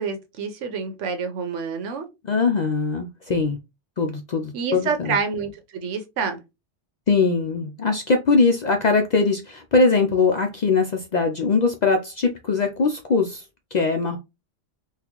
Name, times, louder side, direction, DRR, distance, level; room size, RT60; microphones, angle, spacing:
voice 1, 0.0-2.0 4.5-6.4, right 5 dB, 90° right, 1.0 m, -28 dB
voice 2, 2.2-3.6 4.0-5.2 7.1-13.4 13.7-14.2, left 4 dB, 60° left, 0.4 m, -21 dB
3.8 x 2.3 x 2.8 m
omnidirectional pair, 1.2 m